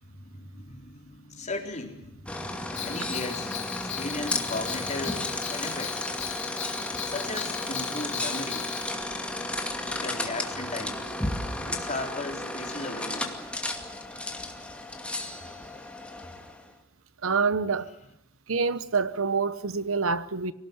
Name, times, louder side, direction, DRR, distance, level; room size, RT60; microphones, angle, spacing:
voice 1, 0.0-6.0 7.0-8.7 9.9-11.0 11.6-13.3, left 2 dB, 35° left, 4.0 m, -37 dB
sound 1, 2.2-16.7, left 1 dB, 5° left, 2.3 m, -33 dB
Bell, 2.7-8.9, left 9 dB, 60° left, 3.0 m, -38 dB
voice 2, 17.2-17.9 18.5-20.5, right 4 dB, 70° right, 1.0 m, -26 dB
25.5 x 18.0 x 9.5 m
head